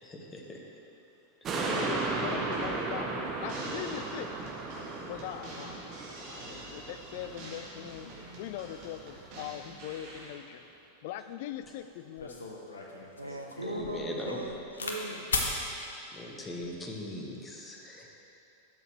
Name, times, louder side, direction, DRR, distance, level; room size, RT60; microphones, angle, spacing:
voice 1, 0.0-0.6 1.4-1.7 13.6-14.4 16.1-18.1, left 1 dB, 15° left, 0 dB, 1.2 m, -40 dB
voice 2, 1.5-4.3 5.1-10.6 11.0-12.4, left 11 dB, 50° left, 12 dB, 0.3 m, -41 dB
sound 1, 1.5-8.1 8.5-8.6, right 3 dB, 25° right, 1.0 m, -35 dB
sound 2, 2.5-10.3, right 2 dB, 45° right, 2.0 m, -47 dB
sound 3, 11.6-11.7 12.2-15.0 15.3-15.6 16.4-16.8, left 3 dB, 70° left, 0.9 m, -36 dB
voice 3, 13.2-15.5, right 1 dB, 85° right, 2 dB, 0.6 m, -39 dB
12.5 x 7.0 x 3.2 m, 2.8 s
figure-of-eight pair, 90°, 0 cm